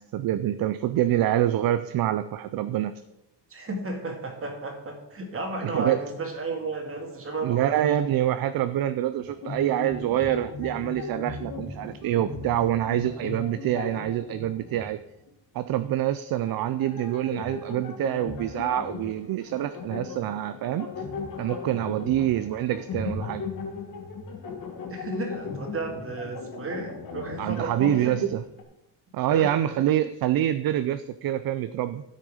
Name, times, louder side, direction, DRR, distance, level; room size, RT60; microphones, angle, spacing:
voice 1, 0.0-2.9 5.6-6.0 7.4-15.0 15.5-20.9 21.4-23.4 27.4-28.4 29.1-32.0, right 12 dB, 55° right, 11 dB, 0.5 m, -26 dB
voice 2, 3.5-7.7 24.9-28.3 29.3-29.5, right 2 dB, 30° right, 3 dB, 2.1 m, -33 dB
sound 1, 9.2-14.9 15.3-15.4 16.3-28.6, left 4 dB, 50° left, 1.9 m, -37 dB
12.5 x 6.6 x 4.9 m, 0.86 s
cardioid pair, 150°, 43 cm